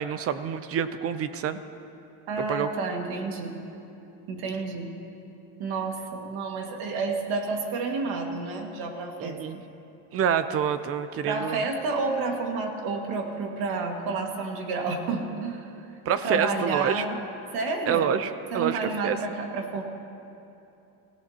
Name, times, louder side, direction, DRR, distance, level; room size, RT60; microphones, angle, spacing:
voice 1, 0.0-1.6 2.4-2.7 9.2-9.6 10.1-11.7 16.1-17.0 17.9-19.2, right 8 dB, 35° right, 12 dB, 0.6 m, -27 dB
voice 2, 2.3-3.5 4.3-4.9 5.6-9.7 11.2-15.7 16.2-17.2 17.5-18.1 18.5-19.8, right 3 dB, 65° right, 3 dB, 2.0 m, -30 dB
25.0 x 16.5 x 2.9 m, 2.8 s
cardioid pair, 145°, 40 cm